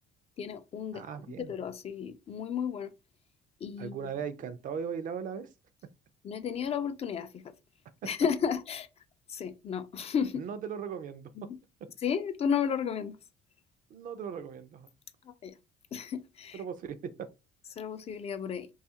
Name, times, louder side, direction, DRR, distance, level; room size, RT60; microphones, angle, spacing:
voice 1, 0.4-1.0 1.4-2.9 3.6-4.0 6.2-7.4 8.0-8.9 9.3-10.4 11.4-11.6 12.0-13.2 15.2-15.6 15.9-16.6 17.8-18.7, left 7 dB, 35° left, 0.4 m, -33 dB
voice 2, 0.9-1.5 3.8-5.5 8.0-8.1 10.4-11.5 13.9-14.9 16.5-17.3, right 7 dB, 50° right, 0.4 m, -38 dB
2.7 x 2.3 x 2.7 m
cardioid pair, 110°, 17 cm